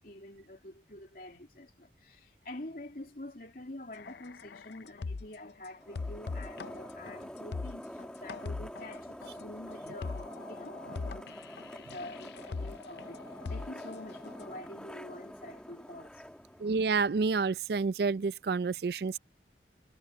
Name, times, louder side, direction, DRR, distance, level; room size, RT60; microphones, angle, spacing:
voice 1, 0.0-13.2 13.5-16.3, left 1 dB, 55° left, 2.7 m, -47 dB
sound 1, 3.9-5.5 5.9-14.4, left 4 dB, 70° left, 0.5 m, -41 dB
sound 2, 5.8-17.3, equal, 5° left, 2.0 m, -46 dB
voice 2, 16.6-19.2, right 4 dB, 65° right, 0.4 m, -29 dB
head